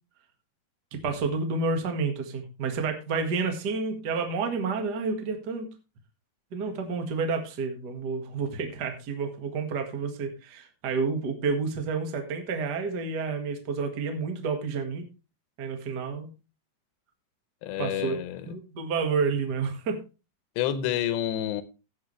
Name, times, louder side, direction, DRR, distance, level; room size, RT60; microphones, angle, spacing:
voice 1, 0.9-5.7 6.5-15.0 15.6-16.3 17.8-18.2 18.5-20.0, right 4 dB, 80° right, 0.9 m, -30 dB
voice 2, 17.6-18.5 20.6-21.6, left 11 dB, 85° left, 3.2 m, -29 dB
16.5 x 6.9 x 3.2 m
omnidirectional pair, 4.9 m